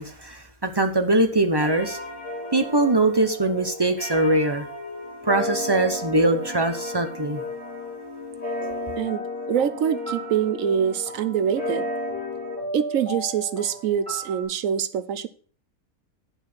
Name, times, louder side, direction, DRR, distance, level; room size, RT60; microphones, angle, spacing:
voice 1, 0.0-2.0 2.5-4.6 5.2-7.4, right 2 dB, 20° right, 0.7 m, -22 dB
sound 1, 1.6-12.6, left 2 dB, 55° left, 2.9 m, -33 dB
sound 2, 8.6-14.4, equal, 25° left, 4.1 m, -37 dB
voice 2, 9.0-11.9 12.7-15.3, right 8 dB, 65° right, 1.0 m, -25 dB
9.2 x 5.7 x 6.0 m
omnidirectional pair, 1.6 m